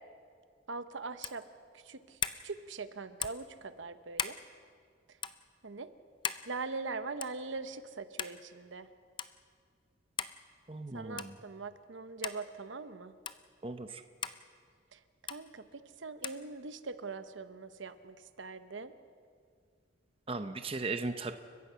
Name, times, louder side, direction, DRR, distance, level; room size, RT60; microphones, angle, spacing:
voice 1, 0.7-1.4 1.7-4.4 5.6-5.9 6.5-8.9 10.9-13.1 14.9-18.9, right 4 dB, 75° right, 11 dB, 0.9 m, -42 dB
sound 1, 1.2-1.4 2.2-2.4 3.2-3.5 4.2-4.4 5.2-5.4 6.2-6.5 7.2-7.4 8.2-8.4 9.2-9.3 10.2-10.4 11.2-11.4 12.2-12.4 13.3-13.4 14.2-14.4 15.3-15.4 16.2-16.4, left 7 dB, 25° left, 0.5 m, -37 dB
voice 2, 10.7-11.3 13.6-14.0 20.3-21.3, right 3 dB, 30° right, 8 dB, 0.7 m, -37 dB
30.0 x 15.0 x 5.7 m, 2.1 s
head